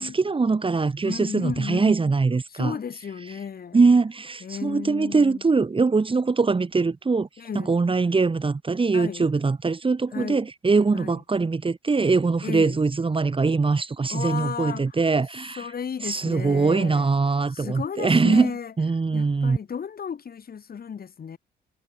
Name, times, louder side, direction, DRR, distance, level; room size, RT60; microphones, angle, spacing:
voice 1, 0.0-2.7 3.7-7.3 7.5-15.6 16.0-18.5 18.8-19.6, right 4 dB, 25° right, 2.5 m, -22 dB
voice 2, 1.0-2.0 2.5-3.8 4.4-5.4 7.4-7.7 8.9-9.3 10.1-10.5 10.9-11.2 12.4-12.8 14.1-15.0 15.6-17.1 17.5-18.7 19.1-21.4, left 7 dB, 50° left, 7.5 m, -34 dB
cardioid pair, 90°, 20 cm